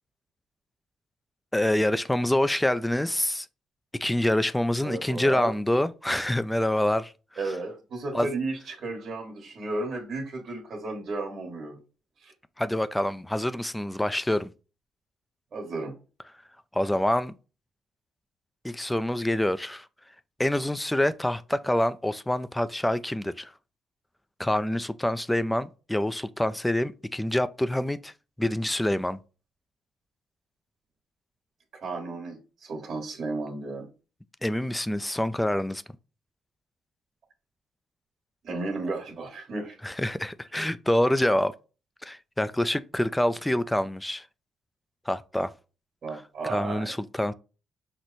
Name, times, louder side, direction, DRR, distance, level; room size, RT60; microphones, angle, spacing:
voice 1, 1.5-3.5 3.9-7.1 8.1-8.3 12.6-14.5 16.7-17.3 18.6-19.9 20.4-23.5 24.4-28.1 28.4-29.2 34.4-35.8 39.8-41.5 42.0-44.3 45.1-45.5 46.4-47.3, left 1 dB, 10° left, 0.3 m, -26 dB
voice 2, 4.8-5.5 7.4-11.8 12.2-12.3 15.5-15.9 31.8-33.9 38.4-39.8 46.0-46.9, right 3 dB, 55° right, 1.4 m, -33 dB
6.1 x 2.1 x 4.0 m
cardioid pair, 90°, 0 cm